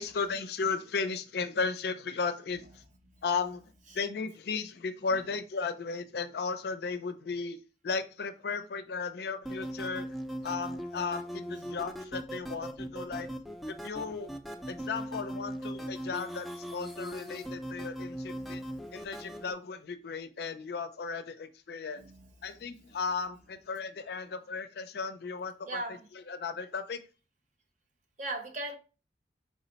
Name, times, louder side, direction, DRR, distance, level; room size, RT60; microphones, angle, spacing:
voice 1, 0.0-2.6 3.2-3.6 4.0-7.6 7.8-10.1 10.4-13.3 13.7-14.3 14.7-18.6 18.9-22.1 22.4-25.8 26.3-27.0, left 5 dB, 60° left, 0.4 m, -35 dB
sound 1, 9.4-19.5, equal, ahead, 0.4 m, -39 dB
voice 2, 18.3-19.4 22.0-23.0 25.7-26.1 28.2-28.8, right 2 dB, 45° right, 0.8 m, -41 dB
4.8 x 2.1 x 3.9 m
head